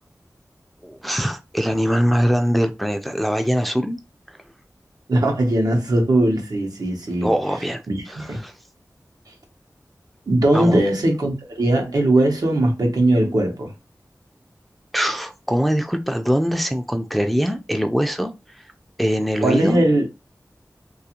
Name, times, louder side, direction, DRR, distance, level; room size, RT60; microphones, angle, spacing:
voice 1, 0.8-4.0 7.2-8.5 10.5-10.8 14.9-18.3 19.0-19.8, equal, ahead, 0.4 m, -22 dB
voice 2, 5.1-7.3 7.9-8.4 10.3-13.7 19.4-20.0, right 1 dB, 80° right, 0.8 m, -19 dB
2.4 x 2.3 x 2.9 m
wide cardioid pair, 60°, 6 cm